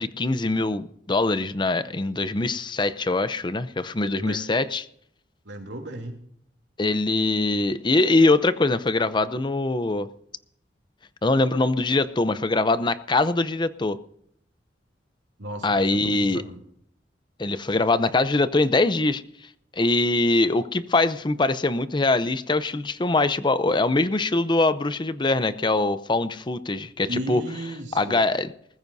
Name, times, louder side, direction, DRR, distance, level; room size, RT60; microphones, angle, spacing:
voice 1, 0.0-4.9 6.8-10.1 11.2-14.0 15.6-16.4 17.4-19.2 19.7-27.4 27.9-28.5, left 2 dB, 25° left, 13 dB, 0.6 m, -23 dB
voice 2, 5.4-6.2 15.4-16.6 27.1-28.2, right 1 dB, 85° right, 3 dB, 3.1 m, -34 dB
20.5 x 14.5 x 2.7 m, 0.69 s
head